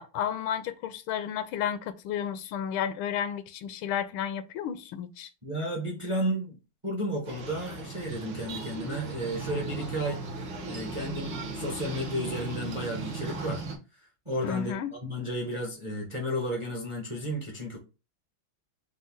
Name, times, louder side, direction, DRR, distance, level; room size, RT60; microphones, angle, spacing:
voice 1, 0.0-5.3 14.4-14.9, left 9 dB, 80° left, 1.4 m, -32 dB
voice 2, 5.4-6.6 6.8-10.2 10.7-13.6 14.2-14.7 15.0-17.8, equal, 25° right, 0.7 m, -32 dB
sound 1, 7.3-13.8, right 3 dB, 65° right, 1.5 m, -37 dB
5.0 x 2.3 x 3.7 m
omnidirectional pair, 2.3 m